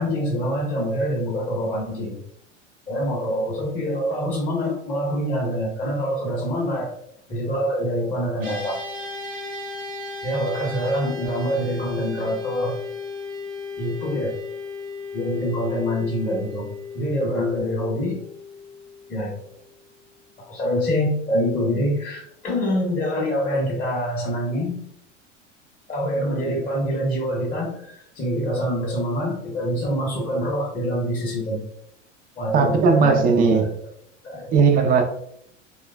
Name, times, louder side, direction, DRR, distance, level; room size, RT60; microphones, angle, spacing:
voice 1, 0.0-2.2 2.9-6.9 7.3-8.8 10.2-12.8 13.8-14.3 15.1-16.7 16.9-18.2 19.1-19.4 20.4-24.8 25.9-31.6 32.4-33.7 34.2-34.5, equal, 20° left, -5 dB, 0.7 m, -25 dB
sound 1, 8.4-19.9, left 4 dB, 85° right, 0.9 m, -35 dB
voice 2, 32.5-33.7 34.5-35.0, right 5 dB, 25° right, 5 dB, 0.4 m, -17 dB
3.0 x 2.2 x 2.2 m, 0.71 s
figure-of-eight pair, 80°, 37 cm